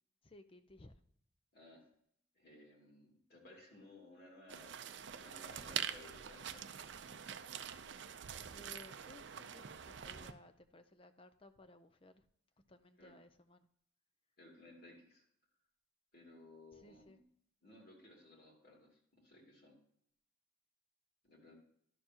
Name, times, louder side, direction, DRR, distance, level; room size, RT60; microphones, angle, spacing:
voice 1, 0.2-0.9 8.5-12.2 12.7-13.7 16.7-17.2, left 1 dB, 25° left, 11 dB, 0.5 m, -59 dB
voice 2, 1.5-1.9 2.3-4.8 5.1-6.6 13.0-13.1 14.4-15.2 16.1-17.2 17.6-19.8 21.2-21.6, left 2 dB, 50° left, 0 dB, 2.6 m, -59 dB
sound 1, 4.5-10.3, right 9 dB, 60° right, 0.5 m, -45 dB
11.5 x 6.7 x 2.9 m, 0.69 s
head